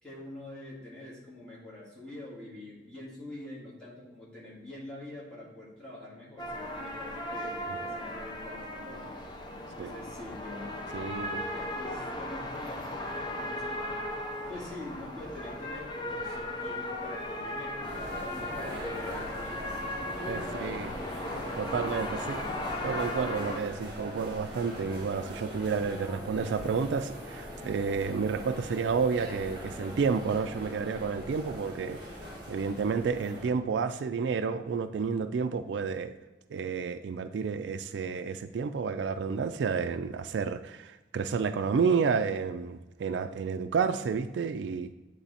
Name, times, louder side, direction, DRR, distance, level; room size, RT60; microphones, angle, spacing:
voice 1, 0.0-9.1 9.6-18.0 18.3-19.8 20.2-22.5, left 1 dB, 5° left, -7 dB, 2.1 m, -45 dB
sound 1, 6.4-23.6, left 1 dB, 25° left, 0.7 m, -37 dB
voice 2, 10.9-11.4 20.2-20.9 21.6-22.4 22.8-32.0 32.5-36.1 36.5-44.9, right 5 dB, 80° right, 10 dB, 0.3 m, -30 dB
sound 2, 17.8-33.5, equal, 25° right, 1.6 m, -41 dB
8.4 x 3.3 x 4.1 m, 1.1 s
head